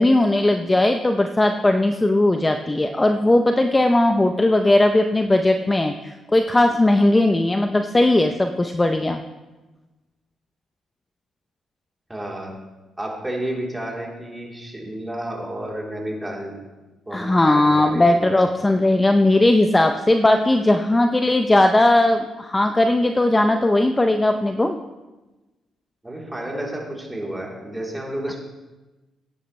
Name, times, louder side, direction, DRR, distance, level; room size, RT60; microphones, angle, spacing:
voice 1, 0.0-9.2 17.1-24.8, left 1 dB, 15° left, 6 dB, 0.6 m, -18 dB
voice 2, 12.1-12.5 13.0-16.5 17.1-18.6 26.0-28.4, right 1 dB, 10° right, -3 dB, 3.4 m, -31 dB
15.5 x 10.0 x 3.2 m, 1.1 s
cardioid pair, 90°, 0 cm